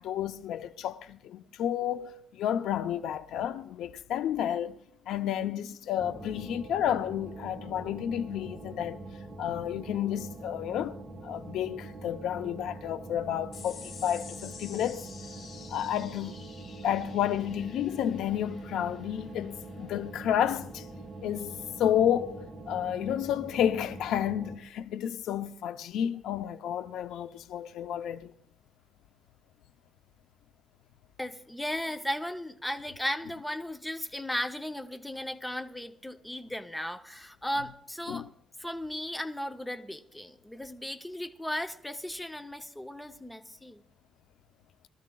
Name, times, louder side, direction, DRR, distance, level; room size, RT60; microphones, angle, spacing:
voice 1, 0.0-4.8 5.1-9.0 9.4-11.0 11.2-15.0 15.7-16.4 16.8-20.9 21.2-28.3 38.1-38.2, left 10 dB, 85° left, 0.5 m, -31 dB
sound 1, 6.0-24.6, right 2 dB, 25° right, 1.4 m, -44 dB
sound 2, 13.5-20.3, left 6 dB, 65° left, 2.2 m, -49 dB
voice 2, 31.2-38.3 38.6-43.8, equal, 5° left, 0.6 m, -36 dB
23.0 x 13.5 x 2.3 m
cardioid pair, 150°, 0 cm